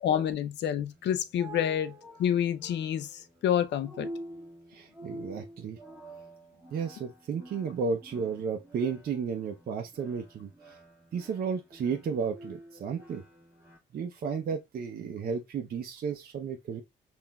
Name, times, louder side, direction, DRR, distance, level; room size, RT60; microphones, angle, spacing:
voice 1, 0.0-1.9 2.2-4.1, left 9 dB, 60° left, 0.5 m, -28 dB
sound 1, 0.9-13.8, right 1 dB, 15° right, 1.4 m, -48 dB
voice 2, 4.7-5.8 6.7-10.8 11.1-13.2 13.9-16.8, right 6 dB, 50° right, 0.6 m, -33 dB
5.5 x 2.5 x 2.2 m
cardioid pair, 90°, 20 cm